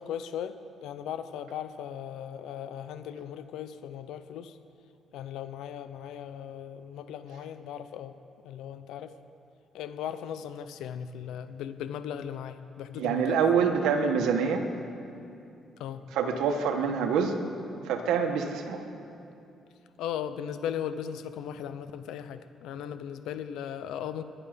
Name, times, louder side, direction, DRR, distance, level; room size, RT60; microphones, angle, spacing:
voice 1, 0.0-4.6 5.1-8.2 8.4-9.1 9.7-13.4 15.8-16.0 20.0-24.2, left 9 dB, 85° left, 11 dB, 0.7 m, -37 dB
voice 2, 13.0-14.7 16.1-17.4 17.8-18.8, right 6 dB, 90° right, 4 dB, 1.5 m, -26 dB
22.5 x 11.5 x 5.2 m, 2.6 s
cardioid pair, 90°, 0 cm